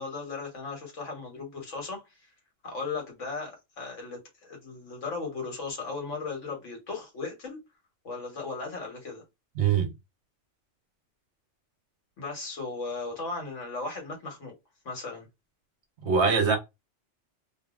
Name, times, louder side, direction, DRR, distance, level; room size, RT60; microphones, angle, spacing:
voice 1, 0.0-2.1 2.6-7.6 8.0-9.2 12.2-14.5 14.8-15.3, left 4 dB, 85° left, 1.5 m, -36 dB
voice 2, 9.6-9.9 16.0-16.6, right 6 dB, 70° right, 1.1 m, -23 dB
2.7 x 2.6 x 2.4 m
omnidirectional pair, 1.2 m